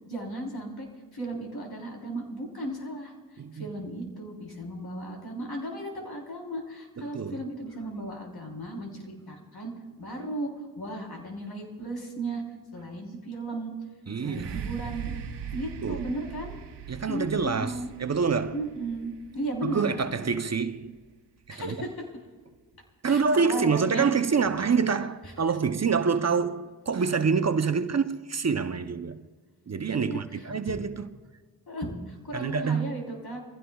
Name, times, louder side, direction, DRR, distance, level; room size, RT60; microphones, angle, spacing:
voice 1, 0.1-0.9 1.1-3.1 3.5-9.7 10.0-10.5 10.8-12.4 12.7-13.7 14.2-15.2 15.5-16.5 17.1-17.9 18.5-20.0 21.5-21.9 23.1-24.1 30.0-30.2 31.7-33.4, right 1 dB, 65° left, 3.8 m, -35 dB
voice 2, 7.0-7.5 14.1-14.7 15.8-16.1 16.9-18.6 19.6-21.0 21.5-21.7 23.0-29.3 29.7-31.2 32.3-33.0, right 5 dB, 40° right, 0.7 m, -27 dB
sound 1, 14.2-22.0 22.6-22.7, right 8 dB, 85° right, 1.0 m, -41 dB
23.5 x 16.0 x 2.3 m
cardioid pair, 50°, 40 cm